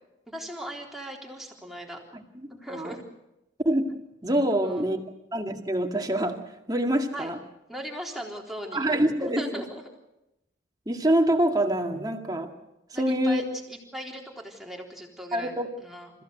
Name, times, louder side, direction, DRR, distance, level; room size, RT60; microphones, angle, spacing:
voice 1, 0.3-2.0 2.5-3.0 4.6-4.9 7.1-7.3 7.7-8.9 9.2-9.9 12.9-13.4 13.7-15.5 15.8-16.1, right 1 dB, ahead, -1 dB, 3.7 m, -38 dB
voice 2, 2.1-2.9 3.6-3.9 4.2-5.0 5.3-7.4 8.7-9.6 10.9-12.5 12.9-13.4 15.3-15.7, right 1 dB, 20° right, 3 dB, 2.1 m, -26 dB
28.5 x 15.5 x 8.1 m, 0.91 s
head